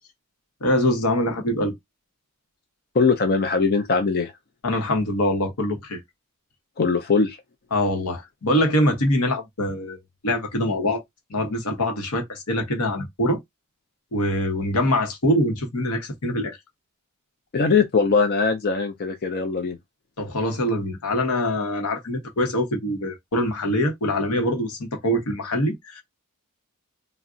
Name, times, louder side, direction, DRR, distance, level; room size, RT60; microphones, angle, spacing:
voice 1, 0.6-1.7 4.6-6.0 7.7-11.0 11.3-13.4 14.1-16.6 20.2-26.0, left 1 dB, 75° left, 0.9 m, -24 dB
voice 2, 2.9-4.3 6.8-7.4 17.5-19.8, left 4 dB, 45° left, 0.4 m, -21 dB
2.4 x 2.1 x 3.7 m
head